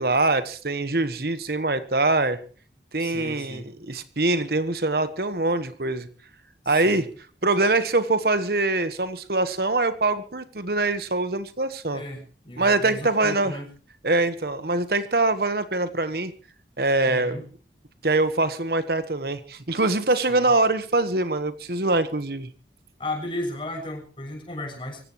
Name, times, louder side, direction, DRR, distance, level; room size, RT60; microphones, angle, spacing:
voice 1, 0.0-2.4 2.9-6.1 6.7-7.1 7.4-12.0 12.6-13.6 14.0-16.3 16.8-17.4 18.0-22.5, right 2 dB, 55° right, 11 dB, 1.3 m, -23 dB
voice 2, 3.0-3.7 6.6-7.1 11.9-13.7 17.1-17.4 20.3-20.5 23.0-25.0, left 1 dB, 30° left, 2 dB, 7.0 m, -35 dB
25.0 x 16.0 x 3.1 m, 0.40 s
head